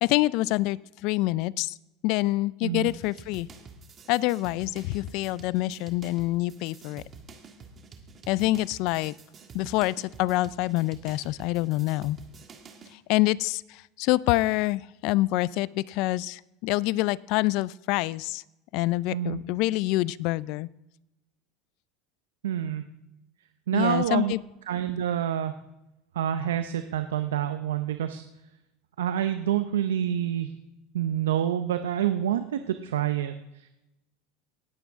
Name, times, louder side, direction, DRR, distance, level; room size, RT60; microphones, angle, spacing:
voice 1, 0.0-1.7 2.0-3.5 4.1-7.0 8.3-9.1 9.5-12.2 12.9-18.4 18.7-20.7 23.7-24.4, left 18 dB, 60° left, 21 dB, 0.4 m, -26 dB
sound 1, 2.9-13.0, right 4 dB, 35° right, 1.7 m, -49 dB
voice 2, 22.4-22.9 23.7-24.3 24.7-25.5 26.1-28.2 29.0-30.5 30.9-33.7, right 10 dB, 90° right, 9 dB, 0.6 m, -27 dB
18.5 x 8.2 x 3.6 m, 0.91 s
hypercardioid pair, 100°, 0 cm